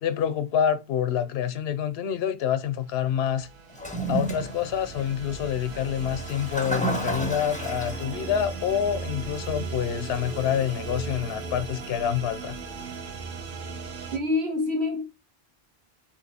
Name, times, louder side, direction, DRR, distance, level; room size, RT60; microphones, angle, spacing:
voice 1, 0.0-3.5 4.1-12.6, left 9 dB, 75° left, 0.8 m, -27 dB
sound 1, 3.2-14.2, right 4 dB, 60° right, 0.9 m, -37 dB
Toilet flush, 3.7-13.0, right 2 dB, 10° left, 0.5 m, -35 dB
voice 2, 14.1-15.0, left 2 dB, 80° right, 1.3 m, -26 dB
3.7 x 2.9 x 4.1 m
omnidirectional pair, 1.1 m